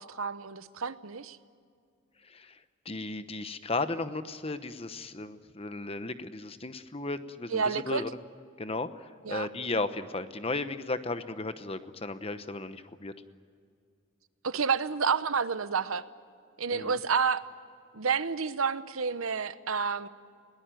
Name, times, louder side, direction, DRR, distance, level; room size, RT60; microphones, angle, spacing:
voice 1, 0.0-1.4 7.5-8.0 9.2-9.5 14.4-16.0 16.6-17.4 17.9-20.1, right 5 dB, 85° right, 14 dB, 0.9 m, -29 dB
voice 2, 2.2-2.6 2.8-8.2 8.6-13.1 16.7-17.0, left 2 dB, 30° left, 11 dB, 0.9 m, -35 dB
22.0 x 19.0 x 9.1 m, 2.3 s
head